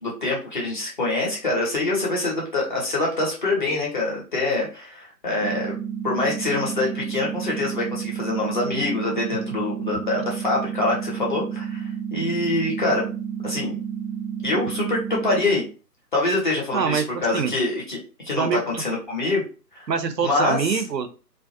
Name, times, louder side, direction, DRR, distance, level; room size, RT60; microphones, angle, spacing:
voice 1, 0.0-5.8 6.0-13.1 13.4-13.7 14.4-15.6 16.1-18.0 18.2-19.4 19.7-19.9 20.2-20.8, left 2 dB, 30° left, -3 dB, 0.8 m, -25 dB
sound 1, 5.4-15.4, right 8 dB, 15° right, 0.6 m, -31 dB
voice 2, 16.7-17.1 17.3-17.5 18.4-18.8 19.9-21.1, right 6 dB, 80° right, 9 dB, 0.6 m, -24 dB
2.4 x 2.1 x 2.5 m, 0.34 s
figure-of-eight pair, 140°, 50 cm